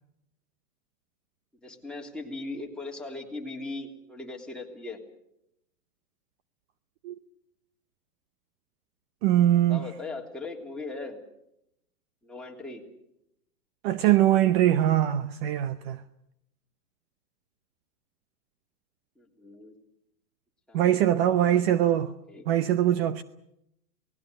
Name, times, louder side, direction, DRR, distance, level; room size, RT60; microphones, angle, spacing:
voice 1, 1.6-5.0 9.7-11.2 12.2-12.8 19.2-19.7 20.7-21.7 22.3-22.5, left 2 dB, ahead, 3.2 m, -39 dB
voice 2, 9.2-9.8 13.8-16.0 20.7-22.1 22.5-23.2, right 12 dB, 40° right, 0.9 m, -22 dB
28.0 x 19.5 x 6.6 m
hypercardioid pair, 140°, 45 cm